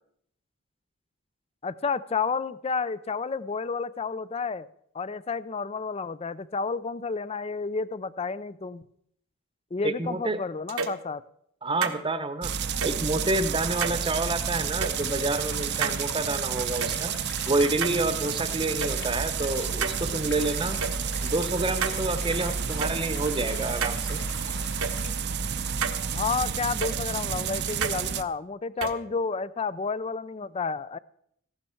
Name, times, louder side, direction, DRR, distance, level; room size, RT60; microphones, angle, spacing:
voice 1, 1.6-4.7 4.9-8.8 9.7-11.2 26.1-31.0, left 4 dB, 30° left, 17 dB, 0.4 m, -31 dB
voice 2, 9.8-10.4 11.6-12.6 12.8-17.2 17.4-20.8 21.2-24.2, right 2 dB, 25° right, 10 dB, 0.9 m, -28 dB
sound 1, 10.7-11.0 11.8-12.0 12.8-12.9 13.8-14.0 14.8-14.9 15.8-16.0 16.8-16.9 17.8-18.4 18.8-18.9 19.8-20.0 20.8-20.9 21.8-22.0 22.8-22.9 23.8-24.0 24.8-24.9 25.8-26.0 26.8-26.9 27.8-28.0 28.8-28.9, right 6 dB, 80° right, 1.2 m, -29 dB
sound 2, 12.4-28.2, right 7 dB, 55° right, 0.6 m, -30 dB
sound 3, 14.1-25.1, left 5 dB, 55° left, 1.7 m, -44 dB
15.0 x 12.0 x 4.5 m, 0.69 s
head